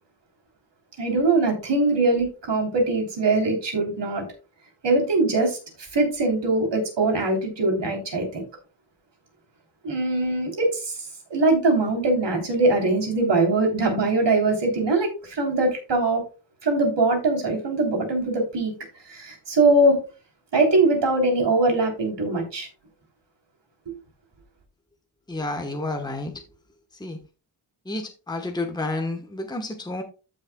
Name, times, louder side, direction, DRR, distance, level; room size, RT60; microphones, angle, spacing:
voice 1, 1.0-4.3 4.8-5.6 5.9-8.4 9.8-16.2 16.6-18.7 19.1-20.0 20.5-22.7 23.9-24.0, right 2 dB, 60° right, 2 dB, 3.5 m, -22 dB
voice 2, 25.3-26.5 26.9-27.2 27.8-30.0, left 2 dB, 10° left, 3 dB, 1.1 m, -30 dB
14.0 x 6.4 x 2.3 m, 0.31 s
wide cardioid pair, 165°, 48 cm